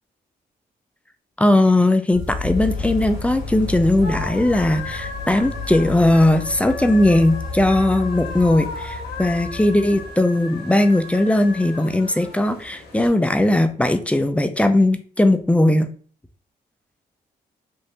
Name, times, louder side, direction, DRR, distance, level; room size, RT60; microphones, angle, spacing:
voice 1, 1.4-15.9, left 1 dB, 10° left, 8 dB, 0.4 m, -18 dB
sound 1, 2.1-10.1, left 3 dB, 65° right, 1.4 m, -31 dB
sound 2, 2.5-13.1, left 4 dB, 75° left, 1.0 m, -36 dB
3.2 x 2.6 x 2.8 m, 0.44 s
cardioid pair, 75°, 17 cm